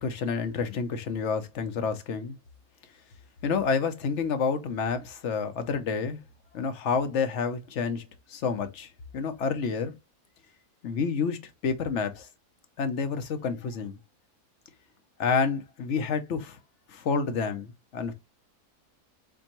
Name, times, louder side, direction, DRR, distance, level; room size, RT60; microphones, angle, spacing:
voice 1, 0.0-2.4 3.4-6.2 6.5-8.0 8.3-9.9 10.8-12.3 12.8-14.0 15.2-16.6 16.9-18.1, left 5 dB, 55° left, 1.0 m, -29 dB
4.4 x 3.8 x 3.0 m
omnidirectional pair, 1.7 m